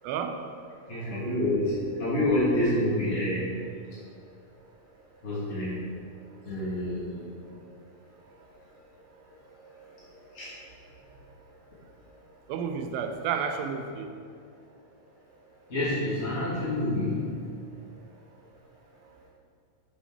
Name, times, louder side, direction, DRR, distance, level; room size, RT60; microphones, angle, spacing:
voice 1, 0.0-0.4 12.5-14.1, right 6 dB, 85° right, 5 dB, 2.4 m, -31 dB
voice 2, 0.9-3.5 5.2-5.7 6.4-7.3 9.6-9.8 10.3-10.5 15.7-17.3, left 1 dB, 40° left, -9 dB, 0.9 m, -28 dB
6.9 x 6.4 x 4.5 m, 2.3 s
omnidirectional pair, 4.3 m